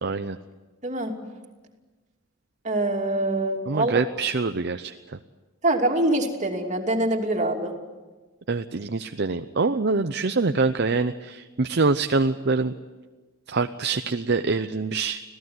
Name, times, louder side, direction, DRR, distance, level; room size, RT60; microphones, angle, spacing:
voice 1, 0.0-0.4 3.7-4.9 8.5-12.7 13.5-15.2, right 3 dB, 50° right, 9 dB, 0.7 m, -25 dB
voice 2, 0.8-1.1 2.6-4.0 5.6-7.7, right 1 dB, 35° right, 2 dB, 2.8 m, -24 dB
26.0 x 17.0 x 9.5 m, 1.3 s
head